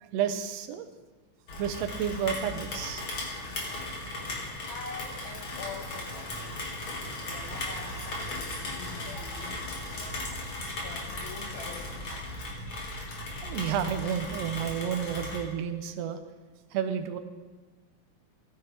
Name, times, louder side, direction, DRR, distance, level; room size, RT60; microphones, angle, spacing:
voice 1, 0.0-0.9 1.6-3.0 13.4-16.2 16.7-17.2, right 8 dB, 75° right, 8 dB, 1.6 m, -31 dB
Rain, 1.5-15.4, left 1 dB, 50° left, 2.1 m, -37 dB
voice 2, 3.2-12.4, left 4 dB, 75° left, -1 dB, 1.1 m, -46 dB
sound 1, 3.3-12.0, right 1 dB, 15° right, 0.8 m, -54 dB
15.0 x 9.2 x 3.3 m, 1.3 s
omnidirectional pair, 3.6 m